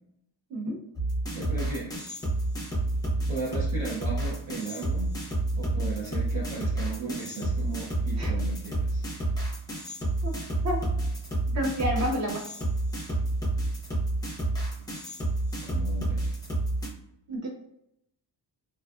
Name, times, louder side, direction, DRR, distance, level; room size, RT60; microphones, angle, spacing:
voice 1, 0.5-0.8 8.2-8.3 10.2-10.3 10.6-10.8 11.5-12.5 17.3-17.5, equal, 35° right, 0 dB, 0.5 m, -29 dB
sound 1, 1.0-16.9, right 2 dB, 10° left, 0.5 m, -29 dB
voice 2, 1.3-2.1 3.3-5.1 5.5-9.1 15.6-16.3, right 3 dB, 80° right, -7 dB, 0.8 m, -36 dB
2.5 x 2.3 x 2.4 m, 0.80 s
wide cardioid pair, 155°, 47 cm